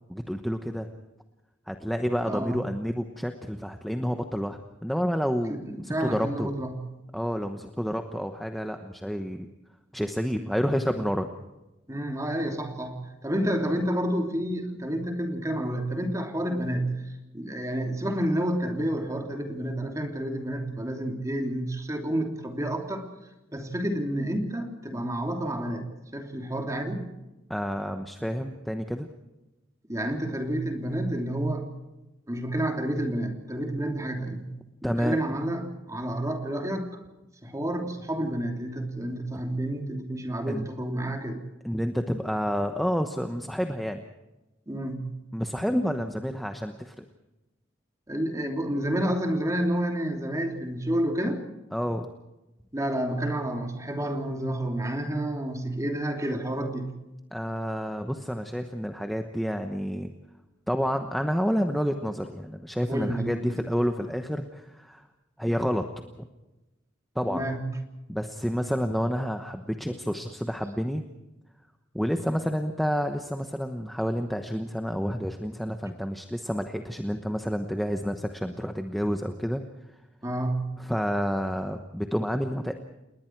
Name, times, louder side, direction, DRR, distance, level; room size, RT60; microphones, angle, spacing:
voice 1, 0.1-0.9 1.7-6.5 7.1-9.5 9.9-11.3 27.5-29.1 34.8-35.2 40.5-40.7 41.6-44.0 45.3-47.0 51.7-52.1 57.3-60.1 60.7-65.0 65.4-65.9 67.1-67.4 68.1-71.0 71.9-79.6 80.8-82.7, equal, ahead, 5 dB, 1.0 m, -29 dB
voice 2, 2.2-2.6 5.4-6.8 11.9-17.0 17.3-23.1 23.5-25.9 26.1-27.1 29.9-31.7 32.3-34.5 34.8-36.9 37.4-41.4 44.7-45.1 48.1-51.4 52.7-56.9 62.9-63.5 67.3-67.7 80.2-80.8, right 1 dB, 15° right, 3 dB, 3.0 m, -29 dB
29.0 x 20.0 x 4.6 m, 1.0 s
head